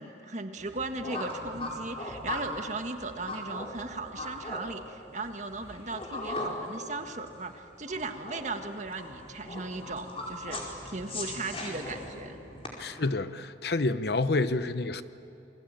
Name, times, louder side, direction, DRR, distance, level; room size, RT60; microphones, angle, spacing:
voice 1, 0.0-12.4, right 3 dB, 45° right, 6 dB, 1.6 m, -37 dB
sound 1, 0.6-12.7, left 2 dB, 35° left, 4.8 m, -39 dB
voice 2, 12.8-15.0, left 2 dB, 65° left, 12 dB, 0.9 m, -28 dB
28.5 x 22.5 x 8.9 m, 2.7 s
head